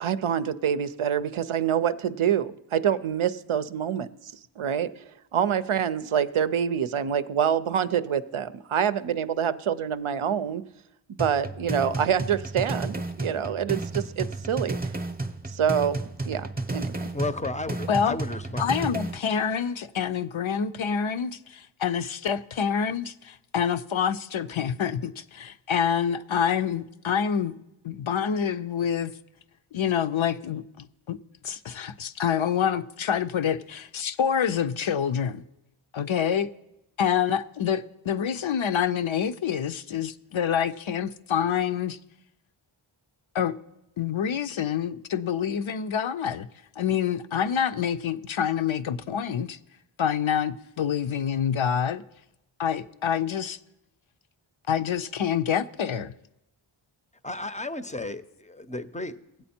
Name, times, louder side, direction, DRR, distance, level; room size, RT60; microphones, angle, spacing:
voice 1, 0.0-4.9 5.3-10.6 11.2-14.9 15.5-16.0 16.3-17.1, right 8 dB, 75° right, 0.6 m, -26 dB
sound 1, 11.2-19.2, right 2 dB, 20° right, 0.7 m, -32 dB
voice 2, 17.1-18.7 57.2-59.4, left 2 dB, 15° left, 0.5 m, -33 dB
voice 3, 18.6-27.5 27.8-29.1 29.7-31.2 31.4-35.4 35.9-36.5 37.0-42.0 43.3-43.6 44.0-46.5 46.8-49.6 50.0-52.0 52.6-53.6 54.7-56.1, left 8 dB, 70° left, 0.6 m, -27 dB
20.5 x 8.0 x 4.3 m
wide cardioid pair, 50°, 50 cm